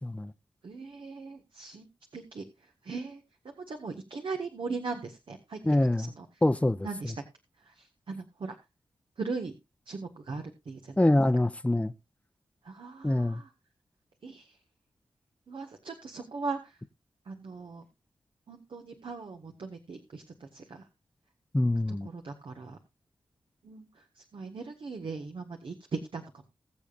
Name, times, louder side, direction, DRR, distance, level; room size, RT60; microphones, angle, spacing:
voice 1, 0.0-0.3 5.6-6.1 6.4-6.9 11.0-11.9 13.0-13.4 21.5-22.1, left 1 dB, 15° left, 0.8 m, -25 dB
voice 2, 0.6-2.4 2.8-5.6 6.0-6.3 6.8-7.2 7.6-8.6 9.2-9.5 9.9-11.0 12.6-13.5 14.2-14.6 15.5-16.8 17.3-17.8 18.5-20.8 21.9-22.8 23.6-26.5, right 4 dB, 70° right, 1.6 m, -39 dB
21.0 x 7.0 x 2.5 m
cardioid pair, 45°, 9 cm